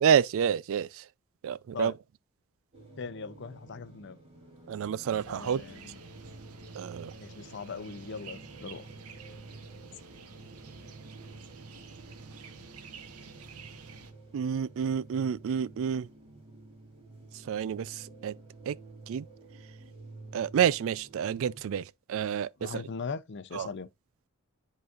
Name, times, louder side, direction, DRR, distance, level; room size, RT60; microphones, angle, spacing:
voice 1, 0.0-0.9 1.4-1.9 4.7-5.6 6.8-7.1 14.3-16.1 17.5-17.9 18.2-18.3 18.7-18.8 19.1-19.2 20.3-21.8 22.1-22.5 23.6-23.7, right 8 dB, 65° right, 0.3 m, -28 dB
sound 1, 2.7-21.6, right 2 dB, 25° right, 2.8 m, -50 dB
voice 2, 3.0-4.2 5.3-6.0 7.2-8.9 22.6-23.9, left 5 dB, 55° left, 0.6 m, -39 dB
sound 2, 5.0-14.1, right 5 dB, 80° right, 1.0 m, -50 dB
10.5 x 4.0 x 2.4 m
head